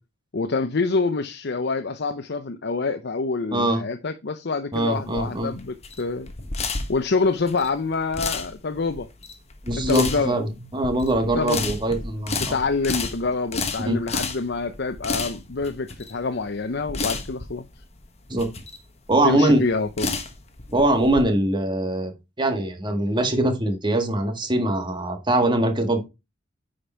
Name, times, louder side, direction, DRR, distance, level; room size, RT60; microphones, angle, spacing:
voice 1, 0.3-6.3 6.9-9.1 9.9-10.4 11.3-11.8 12.4-17.7 19.2-20.1, left 4 dB, 55° left, 0.7 m, -26 dB
voice 2, 3.5-3.8 4.7-5.5 9.6-12.6 13.9-14.0 18.3-18.5 19.1-19.6 20.7-22.1 22.4-26.0, right 1 dB, 25° right, 1.8 m, -22 dB
sound 1, 4.7-21.2, left 4 dB, 35° left, 1.4 m, -32 dB
9.7 x 5.1 x 4.4 m
head